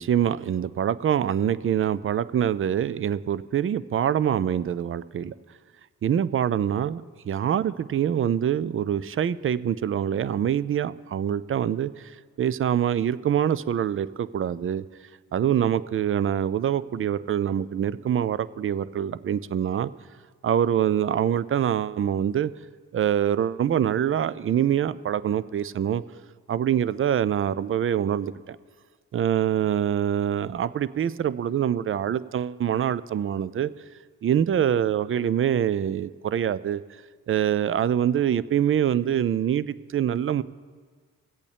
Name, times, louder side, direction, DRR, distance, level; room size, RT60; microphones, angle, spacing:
voice 1, 0.0-5.3 6.0-14.8 15.3-19.9 20.4-22.5 22.9-26.0 26.5-28.6 29.1-33.7 34.2-36.8 37.3-40.4, right 9 dB, 30° right, 17 dB, 0.4 m, -25 dB
20.5 x 8.3 x 3.5 m, 1.5 s
hypercardioid pair, 40°, 42 cm